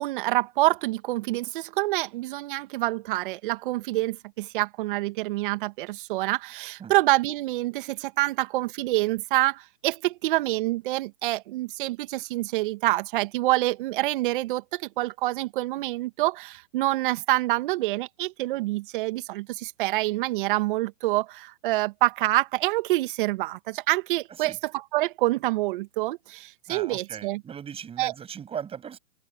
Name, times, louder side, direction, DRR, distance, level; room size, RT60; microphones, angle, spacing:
voice 1, 0.0-27.4 28.0-28.1, right 18 dB, 40° right, 2.1 m, -27 dB
voice 2, 26.7-29.0, right 8 dB, 15° right, 7.4 m, -38 dB
open air
hypercardioid pair, 135°, 38 cm